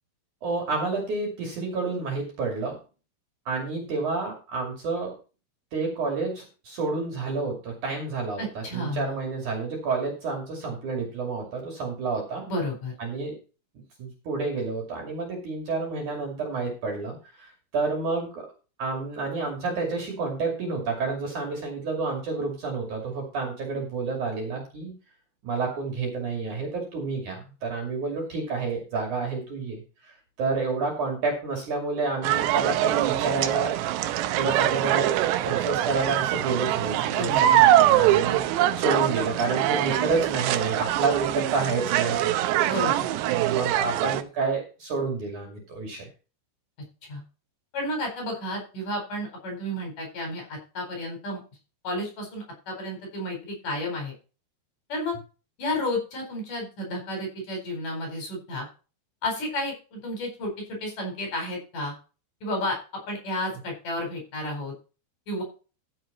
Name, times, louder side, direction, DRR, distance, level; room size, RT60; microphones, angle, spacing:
voice 1, 0.4-2.8 3.5-5.2 5.7-12.4 13.0-13.4 14.0-18.4 18.8-24.9 25.4-33.7 34.4-35.2 35.4-42.3 43.3-46.1, right 4 dB, 50° right, 1 dB, 3.5 m, -29 dB
voice 2, 8.4-9.2 12.4-12.9 37.1-37.6 42.6-43.1 47.1-47.2 47.7-51.4 51.8-54.1 54.9-55.2 55.6-58.7 59.2-61.9 62.4-64.7 65.3-65.4, left 1 dB, 45° left, 2 dB, 5.7 m, -32 dB
sound 1, 32.2-44.2, right 13 dB, 80° right, 2.8 m, -23 dB
14.0 x 6.6 x 4.2 m, 0.34 s
omnidirectional pair, 5.2 m